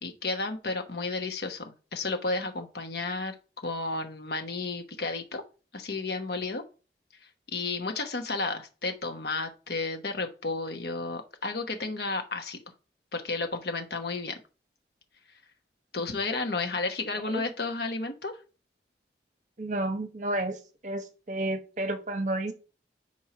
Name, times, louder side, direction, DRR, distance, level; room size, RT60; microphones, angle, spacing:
voice 1, 0.0-3.3 3.6-5.4 5.7-6.6 7.5-12.6 13.1-14.4 15.9-18.3, left 3 dB, 65° left, 5 dB, 1.0 m, -32 dB
voice 2, 19.6-20.6 20.8-22.5, right 1 dB, 45° right, 7 dB, 0.9 m, -31 dB
4.6 x 4.4 x 5.8 m, 0.34 s
head